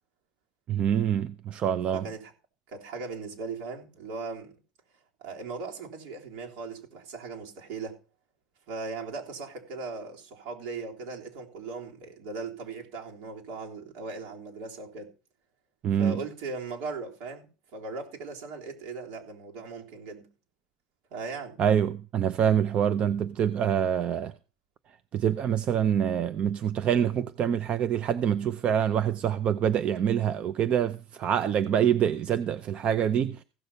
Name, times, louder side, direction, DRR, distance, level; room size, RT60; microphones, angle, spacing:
voice 1, 0.7-2.1 15.8-16.2 21.6-24.3 25.1-33.4, right 9 dB, 40° right, 0.6 m, -26 dB
voice 2, 1.9-2.3 2.7-4.5 5.2-8.0 8.7-15.1 16.0-20.3 21.1-21.6, right 4 dB, 75° right, 3.5 m, -38 dB
15.5 x 6.6 x 5.5 m
supercardioid pair, 125°, 3 cm